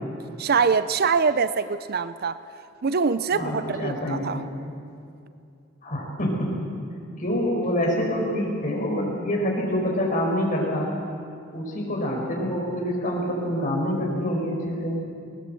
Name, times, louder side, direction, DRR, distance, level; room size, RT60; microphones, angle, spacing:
voice 1, 0.4-2.4 2.8-4.4, right 5 dB, 50° right, 0.5 m, -24 dB
voice 2, 3.3-4.4 5.8-6.5 7.2-10.9 11.5-14.9, equal, 40° left, 5.0 m, -26 dB
20.0 x 19.5 x 7.8 m
head